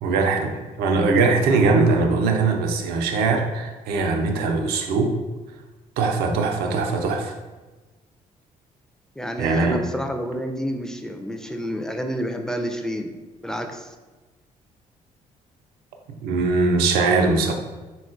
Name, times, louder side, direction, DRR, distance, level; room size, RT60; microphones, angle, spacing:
voice 1, 0.0-5.1 6.0-7.3 9.4-9.8 16.2-17.5, right 3 dB, 75° right, 3 dB, 0.4 m, -21 dB
voice 2, 9.2-13.1 13.4-14.0, equal, 5° left, 4 dB, 0.4 m, -29 dB
3.6 x 2.3 x 2.4 m, 1.2 s
hypercardioid pair, 50°, 17 cm